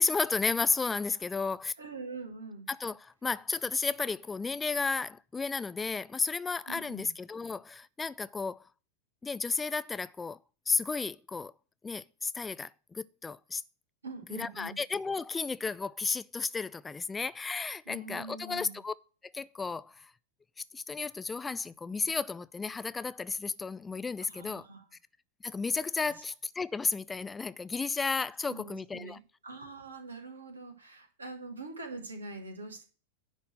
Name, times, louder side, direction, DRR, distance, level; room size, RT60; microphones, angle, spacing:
voice 1, 0.0-1.7 2.7-8.6 9.2-10.4 10.7-11.5 11.8-13.6 14.3-18.9 19.2-20.1 20.7-24.7 25.4-29.2, left 4 dB, 15° left, 0.3 m, -33 dB
voice 2, 1.8-2.7 6.7-7.1 14.0-14.8 17.9-18.8 24.3-24.8 26.0-26.2 28.5-32.8, right 3 dB, 75° right, 2.5 m, -44 dB
10.5 x 4.0 x 7.6 m
figure-of-eight pair, 90°, 0 cm